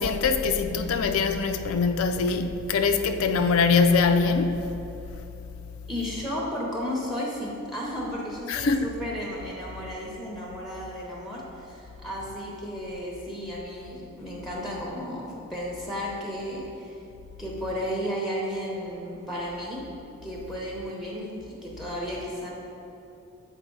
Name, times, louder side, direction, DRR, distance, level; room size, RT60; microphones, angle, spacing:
voice 1, 0.0-4.7 8.5-8.9, left 4 dB, 70° left, 0.4 m, -23 dB
voice 2, 5.9-17.0 17.4-19.8 20.2-22.5, equal, ahead, 0.7 m, -33 dB
7.9 x 4.3 x 3.8 m
head